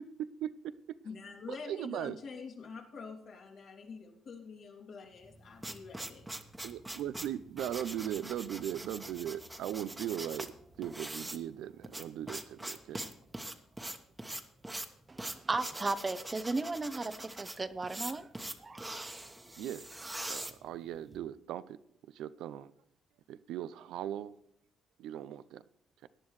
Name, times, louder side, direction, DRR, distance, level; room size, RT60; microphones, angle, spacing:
voice 1, 0.0-1.0 1.5-2.2 6.6-10.5 10.8-13.0 19.6-19.9 20.3-21.8 22.1-22.7 23.3-24.3 25.0-25.6 26.0-26.1, right 11 dB, 85° right, 0.5 m, -39 dB
voice 2, 1.0-6.3, left 5 dB, 65° left, 2.8 m, -46 dB
sound 1, 5.2-21.2, right 1 dB, 10° right, 1.2 m, -43 dB
voice 3, 15.1-18.3 18.6-19.1, right 3 dB, 25° right, 0.7 m, -35 dB
17.5 x 10.5 x 3.2 m
cardioid pair, 90°, 0 cm